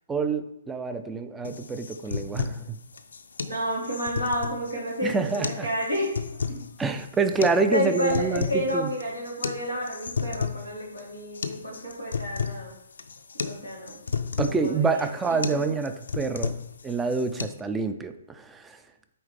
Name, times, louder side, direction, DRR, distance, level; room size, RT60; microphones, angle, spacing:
voice 1, 0.1-2.8 5.0-5.7 6.8-8.9 14.4-16.5 16.8-18.8, right 4 dB, 10° right, 9 dB, 0.4 m, -27 dB
sound 1, 1.4-17.4, left 5 dB, 65° left, 0.5 m, -34 dB
voice 2, 3.4-6.1 6.5-6.6 7.7-12.7 13.3-14.0 14.3-15.7, equal, 90° right, -3 dB, 2.3 m, -30 dB
8.6 x 3.2 x 3.4 m, 0.80 s
figure-of-eight pair, 125°, 0 cm